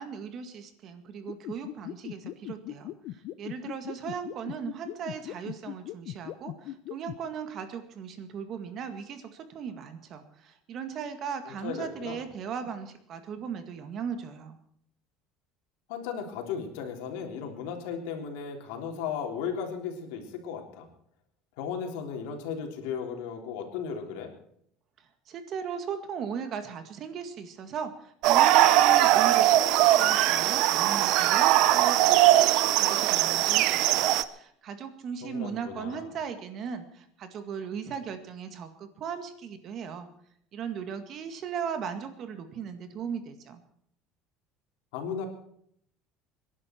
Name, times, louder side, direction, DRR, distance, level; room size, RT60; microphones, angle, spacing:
voice 1, 0.0-14.6 25.0-40.1 40.5-43.6, right 7 dB, 40° right, 8 dB, 2.0 m, -37 dB
sound 1, 1.3-7.1, left 15 dB, 55° left, 0.7 m, -38 dB
voice 2, 11.5-12.2 15.9-20.9 21.6-24.3 35.2-36.1 44.9-45.3, left 7 dB, 85° left, 3 dB, 3.4 m, -35 dB
sound 2, 28.2-34.2, right 14 dB, 60° right, 0.8 m, -21 dB
26.0 x 11.0 x 4.5 m, 0.68 s
cardioid pair, 155°, 0 cm